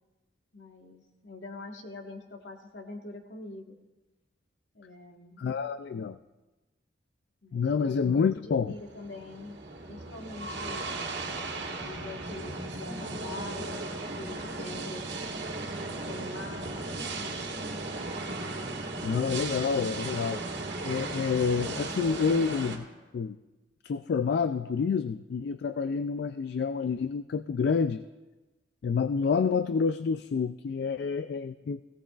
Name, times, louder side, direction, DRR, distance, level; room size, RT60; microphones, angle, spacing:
voice 1, 0.5-3.7 4.7-5.4 7.4-9.6 9.8-10.9 11.8-15.2 16.0-17.4, left 2 dB, 80° left, 2 dB, 1.5 m, -44 dB
voice 2, 5.4-6.2 7.5-8.7 19.0-20.4 20.8-22.8 23.1-23.4 23.8-28.0 28.8-31.8, left 5 dB, 60° left, 11 dB, 0.3 m, -28 dB
sound 1, 8.7-22.8, right 2 dB, 70° right, 1.9 m, -36 dB
17.5 x 17.0 x 2.4 m, 1.2 s
head